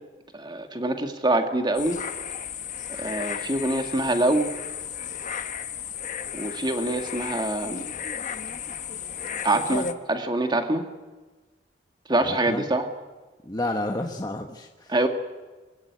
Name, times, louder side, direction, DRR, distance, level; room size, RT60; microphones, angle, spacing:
voice 1, 0.3-2.0 3.0-4.5 6.3-7.8 9.4-10.8 12.1-12.9 14.9-15.1, right 2 dB, 25° right, 5 dB, 2.2 m, -25 dB
sound 1, 1.7-9.9, left 7 dB, 45° left, 1.2 m, -34 dB
voice 2, 12.2-12.6 13.4-15.1, left 1 dB, 20° left, 3 dB, 1.3 m, -31 dB
26.0 x 16.5 x 9.6 m, 1.3 s
head